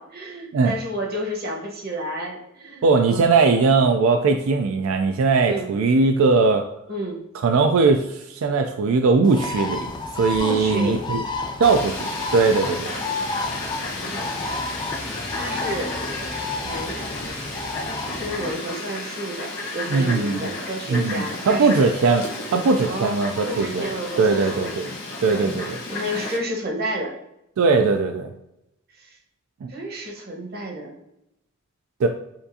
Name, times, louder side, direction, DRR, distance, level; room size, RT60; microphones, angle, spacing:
voice 1, 0.0-3.3 5.5-5.7 6.9-7.2 10.4-11.0 14.0-14.4 15.3-15.9 16.5-17.0 18.0-21.8 22.8-24.7 25.4-27.2 28.9-29.2 29.7-30.9, equal, 50° right, 0 dB, 1.0 m, -31 dB
voice 2, 2.8-6.7 7.4-9.9 10.1-11.2 11.6-12.9 19.9-20.4 20.9-22.2 22.5-23.9 24.2-24.9 25.2-25.8 27.6-28.3 29.6-29.7 32.0-32.1, right 4 dB, 90° right, 5 dB, 0.4 m, -19 dB
Bird, 9.2-18.5, left 3 dB, 20° left, 0.3 m, -31 dB
Fowl, 11.6-26.4, left 2 dB, 70° left, 1.3 m, -33 dB
7.0 x 2.5 x 2.7 m, 0.84 s
head